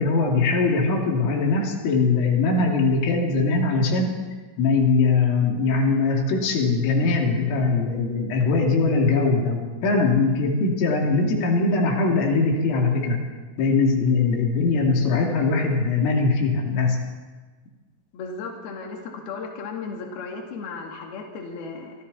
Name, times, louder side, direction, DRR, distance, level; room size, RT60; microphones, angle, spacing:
voice 1, 0.0-4.1 4.6-13.2 13.6-17.0, left 3 dB, 80° left, 0 dB, 5.3 m, -21 dB
voice 2, 18.1-21.9, left 4 dB, 55° left, 0 dB, 4.2 m, -35 dB
28.0 x 24.5 x 4.2 m, 1.4 s
omnidirectional pair, 5.7 m